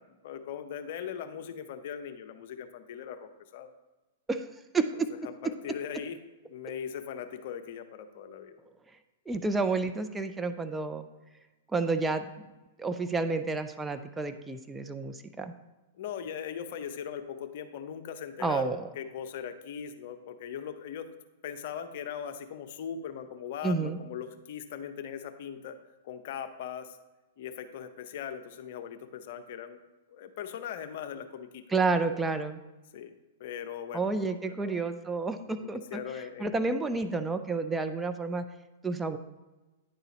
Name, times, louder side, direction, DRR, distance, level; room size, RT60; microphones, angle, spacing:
voice 1, 0.2-3.7 4.9-6.2 6.5-8.6 16.0-21.1 21.4-25.8 26.0-27.0 27.4-29.8 30.1-31.6 32.9-33.1 33.4-34.8 35.5-36.5 36.9-37.3, left 8 dB, 55° left, 8 dB, 0.7 m, -40 dB
voice 2, 4.7-5.1 9.3-11.1 11.7-12.2 12.8-15.5 18.4-18.9 23.6-24.0 31.7-32.6 33.9-36.0 36.4-38.4 38.8-39.2, right 3 dB, 10° right, 8 dB, 0.4 m, -30 dB
9.9 x 4.0 x 4.1 m, 1.1 s
hypercardioid pair, 110°, 0 cm